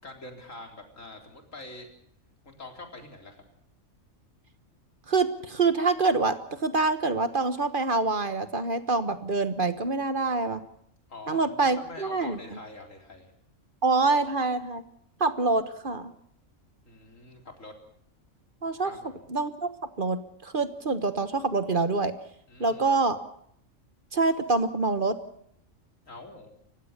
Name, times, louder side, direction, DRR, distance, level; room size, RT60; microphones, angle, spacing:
voice 1, 0.0-1.9 2.4-3.4 11.1-13.3 16.8-17.7 18.8-19.1 22.5-22.8 26.1-26.5, left 2 dB, 80° left, 3 dB, 4.2 m, -45 dB
voice 2, 5.1-10.6 11.3-12.4 13.8-14.8 15.2-16.1 18.6-18.9 19.3-19.7 20.0-22.1 22.6-23.2 24.1-25.2, right 3 dB, 45° right, 10 dB, 1.4 m, -26 dB
29.5 x 16.0 x 6.7 m, 0.70 s
omnidirectional pair, 1.3 m